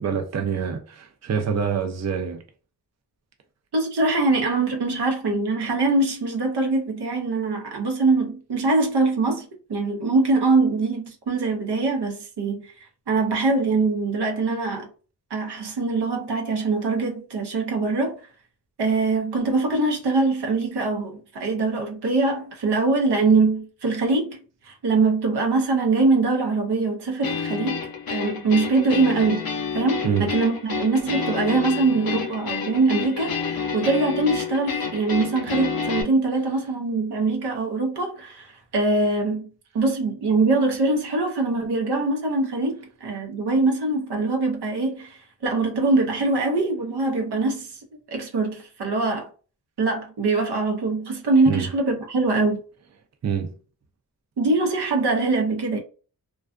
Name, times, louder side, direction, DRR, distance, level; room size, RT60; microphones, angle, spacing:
voice 1, 0.0-2.4 30.0-30.3 51.5-51.7 53.2-53.5, right 7 dB, 45° right, 0.5 m, -26 dB
voice 2, 3.7-12.7 13.1-14.9 15.3-18.2 18.8-24.4 24.7-27.8 28.1-29.5 29.7-39.4 39.7-47.8 48.1-49.3 49.8-52.6 54.4-55.8, right 3 dB, 80° right, 0.7 m, -23 dB
sound 1, 27.2-36.0, left 6 dB, 60° left, 0.6 m, -29 dB
2.3 x 2.2 x 2.4 m
cardioid pair, 45°, 40 cm